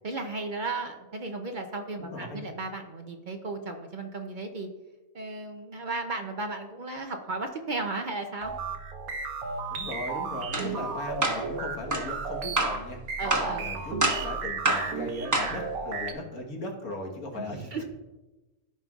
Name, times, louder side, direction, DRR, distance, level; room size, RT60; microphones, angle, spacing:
voice 1, 0.0-4.7 5.1-8.5 13.2-13.7 17.3-17.8, right 3 dB, 55° right, 5 dB, 0.5 m, -35 dB
voice 2, 2.0-2.4 9.7-17.8, left 1 dB, 80° left, 0 dB, 1.8 m, -38 dB
sound 1, 8.4-16.1, right 4 dB, 80° right, 1.3 m, -34 dB
sound 2, 10.5-10.7 11.2-11.4 11.9-12.1 12.6-12.8 13.3-13.5 14.0-14.3 14.7-14.9 15.3-15.6, right 2 dB, 15° right, 1.0 m, -26 dB
14.0 x 5.4 x 2.4 m, 1.1 s
omnidirectional pair, 1.5 m